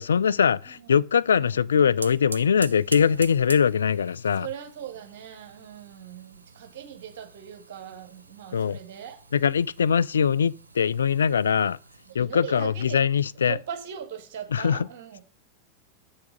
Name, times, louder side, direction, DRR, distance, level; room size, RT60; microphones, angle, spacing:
voice 1, 0.0-4.5 8.5-8.8 9.3-11.8 12.1-13.6 14.5-14.9, left 7 dB, 70° left, 0.3 m, -22 dB
voice 2, 1.3-1.7 4.3-9.2 12.1-13.0 13.4-15.2, right 9 dB, 50° right, 1.8 m, -40 dB
sound 1, 1.5-12.1, right 4 dB, 80° right, 0.3 m, -44 dB
7.0 x 5.8 x 5.1 m
figure-of-eight pair, 90°, 0 cm